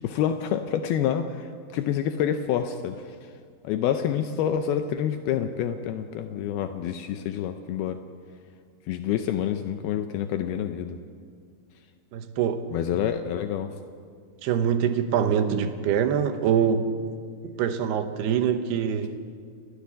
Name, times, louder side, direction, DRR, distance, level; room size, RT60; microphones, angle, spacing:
voice 1, 0.0-3.3 3.6-8.0 8.9-11.0 12.7-13.7, left 9 dB, 80° left, 7 dB, 2.6 m, -28 dB
voice 2, 12.1-12.7 14.4-16.9 17.4-19.2, right 8 dB, 80° right, 8 dB, 3.1 m, -24 dB
30.0 x 10.5 x 9.7 m, 2.1 s
omnidirectional pair, 4.6 m